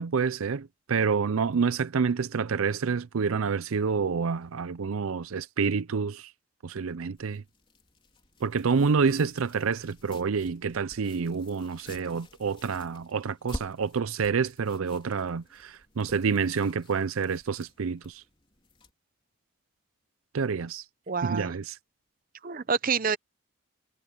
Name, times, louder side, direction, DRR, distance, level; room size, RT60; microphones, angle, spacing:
voice 1, 0.0-6.3 6.6-7.4 8.4-18.2 20.3-20.8 21.2-21.8, right 5 dB, 75° right, 0.5 m, -28 dB
sound 1, 7.2-18.9, left 1 dB, 25° left, 4.1 m, -48 dB
voice 2, 21.1-21.5 22.4-23.2, right 5 dB, 40° right, 0.7 m, -27 dB
head